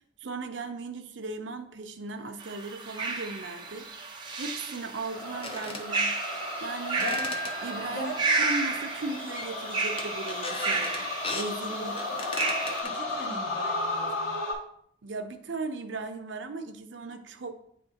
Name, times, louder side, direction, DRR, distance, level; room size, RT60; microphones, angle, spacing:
voice 1, 0.2-3.9 4.4-6.2 6.6-7.1 7.6-12.0 15.0-17.5, right 3 dB, 75° right, 7 dB, 0.6 m, -37 dB
sound 1, 2.4-12.8, right 3 dB, 25° right, 0.8 m, -32 dB
sound 2, 3.7-3.8 4.2-4.3 5.3-5.8 6.8-8.0 8.4-8.8 9.1-9.7 10.0-11.5 12.0-13.4, left 3 dB, 30° left, 0.6 m, -38 dB
sound 3, 5.0-14.5, left 2 dB, 75° left, 2.4 m, -35 dB
voice 2, 7.0-7.4 7.9-8.5 11.8-12.0 12.4-14.4, left 1 dB, 55° left, -3 dB, 1.7 m, -40 dB
9.5 x 3.5 x 2.8 m, 0.69 s
head